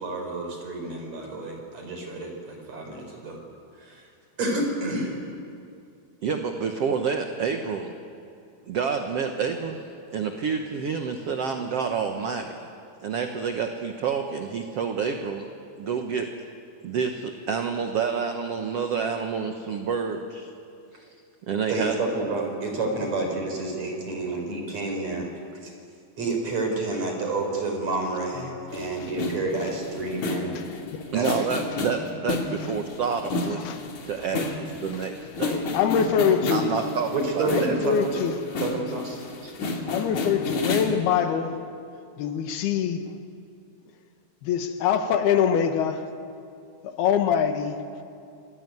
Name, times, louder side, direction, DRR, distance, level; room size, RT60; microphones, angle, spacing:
voice 1, 0.0-3.4 3.8-4.1 4.4-5.1 21.7-25.3 25.6-25.7 26.2-30.6 31.1-31.4 37.1-38.3 38.6-39.2 39.4-39.5, right 2 dB, 45° right, 2 dB, 5.4 m, -29 dB
voice 2, 6.2-8.0 8.6-9.8 10.1-12.5 13.0-15.5 15.8-16.3 16.8-20.5 20.9-21.1 21.5-22.0 31.1-33.6 34.1-35.6 36.5-37.1 37.4-37.7, right 6 dB, 65° right, 4 dB, 1.6 m, -28 dB
sound 1, 28.7-41.0, left 3 dB, 50° left, 3.4 m, -32 dB
voice 3, 33.6-33.9 34.9-35.0 35.5-36.8 37.5-38.3 39.9-41.6 42.2-43.1 44.4-46.1 46.8-47.8, left 8 dB, 85° left, 7 dB, 3.4 m, -24 dB
27.5 x 20.0 x 9.5 m, 2.5 s
omnidirectional pair, 4.4 m